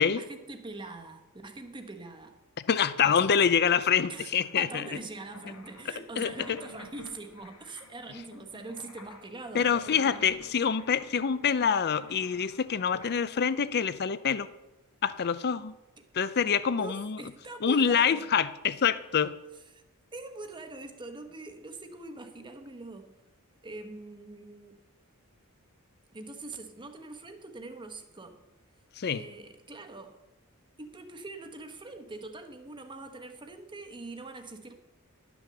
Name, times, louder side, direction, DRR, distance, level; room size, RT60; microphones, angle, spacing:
voice 1, 0.1-2.4 3.0-3.2 4.1-4.3 4.5-10.3 16.8-18.3 19.5-19.8 20.1-23.1 23.6-24.8 26.1-28.4 29.1-30.2 30.8-34.7, right 2 dB, 20° right, 6 dB, 1.0 m, -43 dB
voice 2, 2.7-4.8 6.2-6.3 9.5-14.5 15.0-15.7 16.1-17.2 17.6-19.3 29.0-29.2, left 7 dB, 45° left, 15 dB, 0.5 m, -26 dB
sound 1, 3.0-13.1, left 3 dB, 85° left, 1.3 m, -50 dB
11.5 x 6.1 x 6.9 m, 0.98 s
head